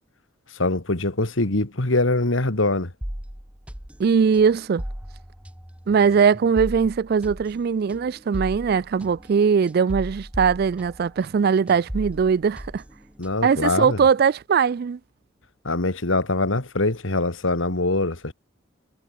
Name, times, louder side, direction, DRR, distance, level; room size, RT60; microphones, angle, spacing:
voice 1, 0.6-2.9 13.2-14.0 15.6-18.3, left 2 dB, 85° left, 2.4 m, -23 dB
sound 1, 3.0-11.4 11.7-13.6, equal, 5° right, 1.0 m, -37 dB
voice 2, 4.0-4.8 5.9-12.8 13.4-15.0, right 6 dB, 50° right, 0.3 m, -20 dB
head